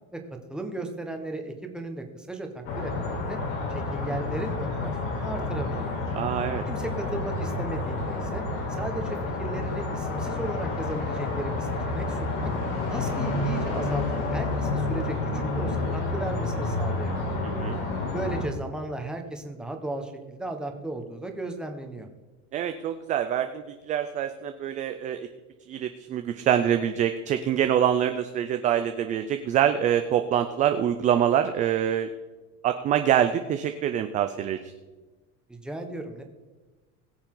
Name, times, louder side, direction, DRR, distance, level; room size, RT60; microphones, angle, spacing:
voice 1, 0.5-3.4 3.7-5.9 6.7-8.4 8.8-12.5 12.9-14.0 14.3-17.4 18.1-22.1 35.5-36.2, right 2 dB, ahead, 3 dB, 1.2 m, -35 dB
sound 1, 2.6-18.4, left 2 dB, 70° left, 4.2 m, -29 dB
voice 2, 6.1-6.6 17.4-17.8 22.5-25.3 25.7-32.1 32.6-34.7, right 10 dB, 20° right, 8 dB, 0.3 m, -25 dB
21.0 x 7.0 x 3.8 m, 1.2 s
cardioid pair, 160°, 37 cm